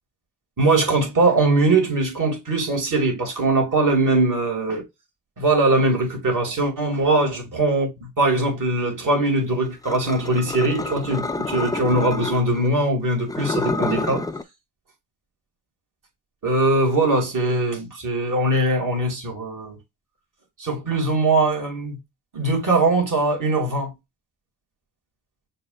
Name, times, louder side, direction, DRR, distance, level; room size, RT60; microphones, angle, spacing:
voice 1, 0.6-4.8 5.4-14.2 16.4-19.8 20.6-22.0 22.3-23.9, right 2 dB, 40° right, 2.5 m, -21 dB
sound 1, 9.8-12.7 13.2-14.4, left 3 dB, 10° left, 0.4 m, -28 dB
6.6 x 2.8 x 2.4 m
hypercardioid pair, 40°, 46 cm